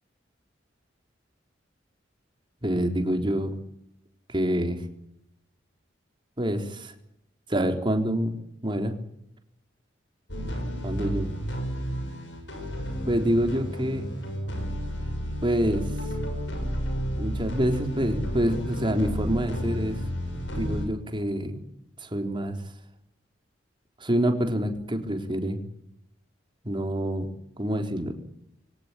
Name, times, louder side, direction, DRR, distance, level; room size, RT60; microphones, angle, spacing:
voice 1, 2.6-3.5 4.3-4.8 6.4-6.9 7.5-8.3 8.6-8.9 10.8-11.3 13.1-14.1 15.4-15.9 17.2-20.0 20.6-21.6 22.0-22.6 24.0-25.6 26.6-27.3 27.6-28.1, equal, 25° right, 4 dB, 3.9 m, -26 dB
sound 1, 10.3-20.9, equal, 85° left, 7.1 m, -32 dB
24.5 x 18.0 x 9.8 m, 0.80 s
head